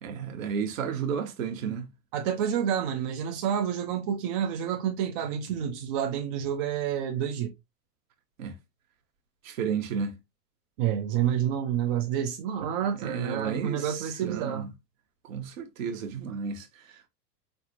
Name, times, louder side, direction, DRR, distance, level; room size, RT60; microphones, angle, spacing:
voice 1, 0.0-1.9 8.4-8.5 9.4-10.1 13.0-14.7 15.2-17.1, right 6 dB, 55° right, 1.1 m, -32 dB
voice 2, 2.1-7.5 10.8-14.7, right 9 dB, 35° right, 0.6 m, -29 dB
4.7 x 3.4 x 2.6 m
figure-of-eight pair, 90°, 48 cm